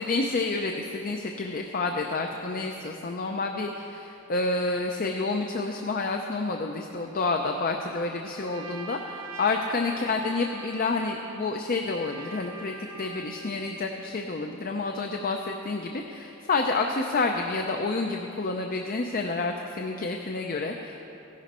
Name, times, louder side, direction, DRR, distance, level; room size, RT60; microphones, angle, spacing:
voice 1, 0.0-21.0, left 3 dB, 45° left, 3 dB, 0.6 m, -29 dB
Trumpet, 7.9-13.6, right 3 dB, 75° right, 1.2 m, -43 dB
15.5 x 11.0 x 4.3 m, 2.9 s
head